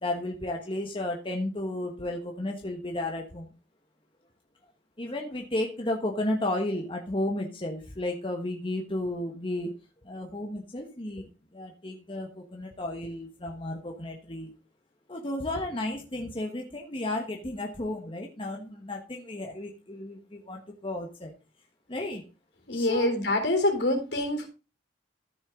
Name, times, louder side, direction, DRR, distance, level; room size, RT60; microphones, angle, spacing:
voice 1, 0.0-3.5 5.0-9.7 10.0-14.5 15.1-21.3 21.9-22.2 22.7-23.1, left 1 dB, 30° left, 1.4 m, -33 dB
voice 2, 22.7-24.5, left 1 dB, 70° left, 3.8 m, -25 dB
14.0 x 6.4 x 3.8 m
head